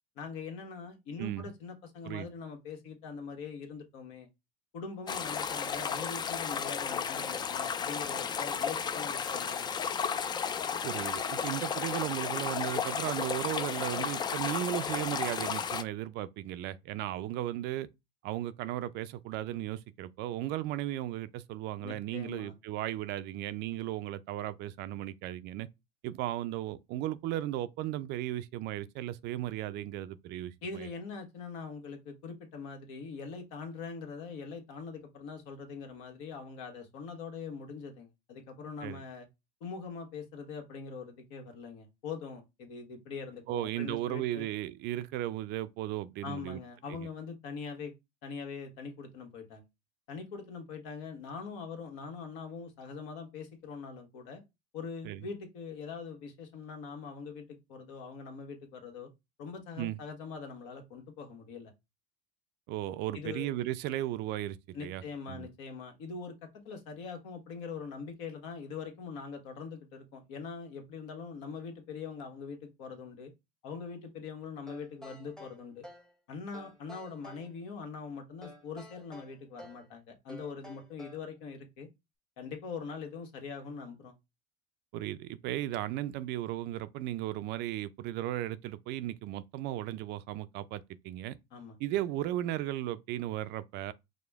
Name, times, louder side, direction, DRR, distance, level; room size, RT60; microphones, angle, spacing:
voice 1, 0.2-4.3 4.7-9.6 9.9-10.0 21.8-22.6 30.6-39.3 39.6-44.5 46.2-47.9 48.2-49.6 50.1-54.4 54.7-59.1 59.4-61.7 63.1-63.5 64.7-66.3 66.6-73.3 73.6-75.8 76.3-81.9 82.4-84.1 91.5-91.8, left 5 dB, 70° left, 1.3 m, -42 dB
voice 2, 1.2-1.5 2.0-2.3 10.8-17.9 18.2-25.7 26.0-30.9 38.8-39.0 43.5-46.6 46.9-47.0 55.0-55.2 59.8-60.0 62.7-65.0 65.3-65.5 84.9-91.4 91.8-93.9, right 14 dB, 55° right, 0.4 m, -36 dB
sound 1, 5.1-15.8, left 7 dB, 20° left, 0.3 m, -33 dB
sound 2, 74.7-76.1 76.5-77.5 78.4-79.9 80.3-81.3, left 1 dB, 5° left, 0.9 m, -51 dB
4.9 x 2.1 x 3.5 m
supercardioid pair, 115°, 21 cm